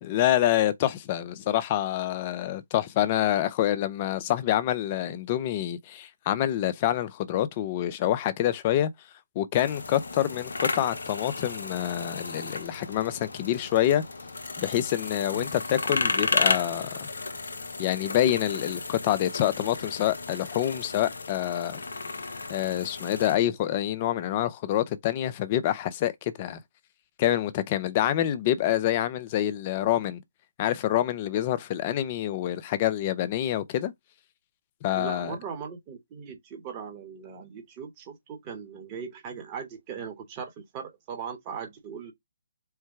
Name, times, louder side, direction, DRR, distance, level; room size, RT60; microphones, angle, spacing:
voice 1, 0.0-8.9 9.4-14.0 14.6-17.1 17.8-21.8 22.5-26.6 27.2-30.2 30.6-33.9 34.8-35.4, left 12 dB, 35° left, 0.6 m, -26 dB
sound 1, 9.5-23.4, left 3 dB, 75° left, 0.8 m, -33 dB
voice 2, 34.9-42.1, right 6 dB, 30° right, 1.2 m, -39 dB
4.5 x 2.2 x 4.7 m
figure-of-eight pair, 145°, 0 cm